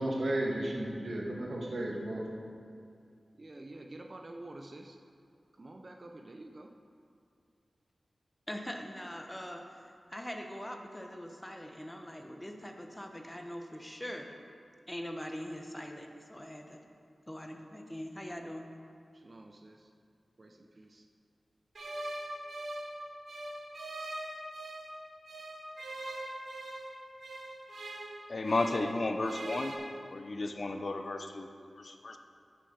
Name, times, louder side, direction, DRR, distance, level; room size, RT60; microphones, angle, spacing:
voice 1, 0.0-2.2, right 1 dB, 70° right, -2 dB, 2.0 m, -33 dB
voice 2, 0.7-1.1 2.1-2.2 3.4-5.0 5.6-6.7 19.1-19.9 20.4-21.1, right 2 dB, 45° right, 3 dB, 0.7 m, -49 dB
voice 3, 8.5-14.4 14.9-16.8 17.3-18.7, equal, 10° left, 3 dB, 1.1 m, -42 dB
sound 1, 21.7-24.9 25.3-28.9 29.2-29.7, right 1 dB, 85° right, 1.8 m, -42 dB
voice 4, 28.3-29.8 30.1-31.5 32.0-32.2, left 2 dB, 55° left, 6 dB, 0.8 m, -33 dB
9.1 x 6.9 x 8.0 m, 2.3 s
wide cardioid pair, 60°, 0 cm